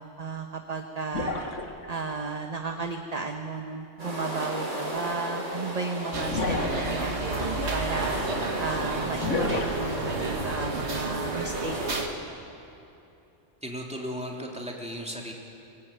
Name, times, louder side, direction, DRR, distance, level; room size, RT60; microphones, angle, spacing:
voice 1, 0.0-1.3 1.9-8.1 8.6-11.8, right 4 dB, 35° right, 4 dB, 1.2 m, -34 dB
sound 1, 1.1-2.0 4.5-4.6 6.3-7.0 9.2-9.8, left 3 dB, 80° left, 2.3 m, -30 dB
sound 2, 4.0-12.1, right 1 dB, 85° right, 4.7 m, -35 dB
sound 3, 6.1-12.1, right 3 dB, 65° right, 2.2 m, -32 dB
voice 2, 13.6-15.3, equal, 5° right, -1 dB, 3.3 m, -35 dB
24.5 x 19.5 x 9.1 m, 2.8 s
omnidirectional pair, 1.2 m